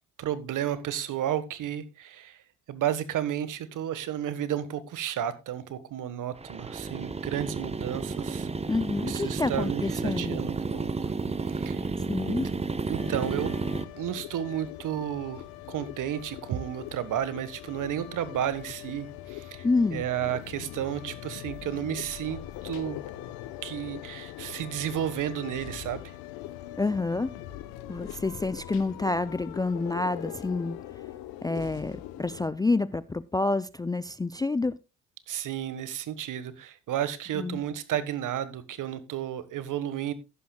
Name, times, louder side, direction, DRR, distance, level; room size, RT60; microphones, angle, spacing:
voice 1, 0.2-2.4 2.7-8.5 9.0-11.1 11.5-11.9 12.3-12.4 12.9-13.5 13.9-23.0 23.6-26.0 35.3-40.1, right 10 dB, 55° right, 1.5 m, -32 dB
sound 1, 6.4-13.8, right 4 dB, 15° right, 1.0 m, -32 dB
voice 2, 8.7-10.4 12.1-12.5 19.6-20.0 26.8-27.3 27.9-30.8 31.4-34.7 37.4-37.6, left 3 dB, 10° left, 0.4 m, -28 dB
sound 2, 13.0-32.5, left 13 dB, 75° left, 1.1 m, -42 dB
14.5 x 11.5 x 2.3 m
supercardioid pair, 70°, 37 cm